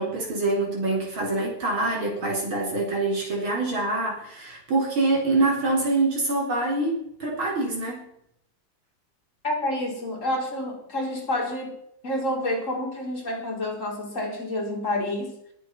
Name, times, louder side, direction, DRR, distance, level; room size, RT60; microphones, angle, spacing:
voice 1, 0.0-8.1, right 2 dB, 80° right, -1 dB, 5.1 m, -25 dB
voice 2, 9.4-11.8 12.0-15.4, left 1 dB, 35° left, 0 dB, 4.0 m, -28 dB
19.5 x 8.0 x 6.0 m, 0.72 s
omnidirectional pair, 2.2 m